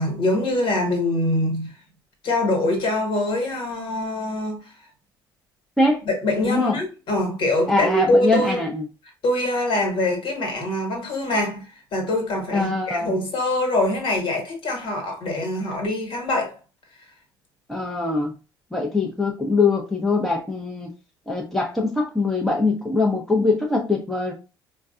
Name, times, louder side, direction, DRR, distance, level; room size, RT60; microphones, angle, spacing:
voice 1, 0.0-1.7 2.2-4.7 6.0-8.6 9.2-16.6, left 1 dB, 45° left, 1.5 m, -24 dB
voice 2, 6.4-6.8 7.7-8.8 12.5-13.1 17.7-18.3 18.7-20.9 21.3-24.3, left 3 dB, 5° left, 0.9 m, -22 dB
4.5 x 2.3 x 2.5 m
figure-of-eight pair, 55°, 12 cm